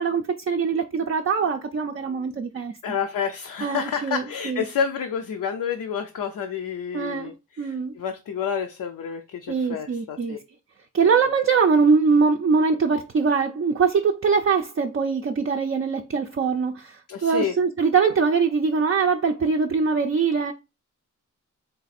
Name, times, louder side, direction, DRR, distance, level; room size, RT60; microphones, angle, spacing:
voice 1, 0.0-2.7 3.6-4.6 6.9-7.9 9.5-10.4 10.9-20.5, right 5 dB, 40° right, 0.4 m, -22 dB
voice 2, 2.8-10.4 11.0-11.2 17.1-17.5, left 7 dB, 80° left, 0.5 m, -29 dB
4.0 x 2.5 x 4.0 m
wide cardioid pair, 80°, 32 cm